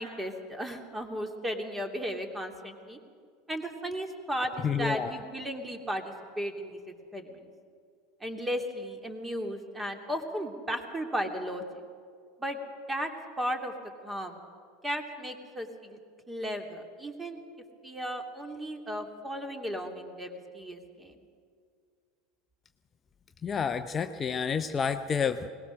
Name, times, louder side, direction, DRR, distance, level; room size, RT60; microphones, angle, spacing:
voice 1, 0.0-3.0 3.5-6.8 7.1-7.5 8.2-11.6 12.4-12.6 12.9-13.1 13.4-13.7 14.0-14.4 14.8-16.0 16.3-17.4 17.8-21.1, equal, 15° right, 4 dB, 2.7 m, -35 dB
voice 2, 4.6-5.2 23.4-25.5, left 6 dB, 30° left, 8 dB, 0.7 m, -29 dB
21.5 x 19.5 x 6.4 m, 2.2 s
figure-of-eight pair, 80°, 0 cm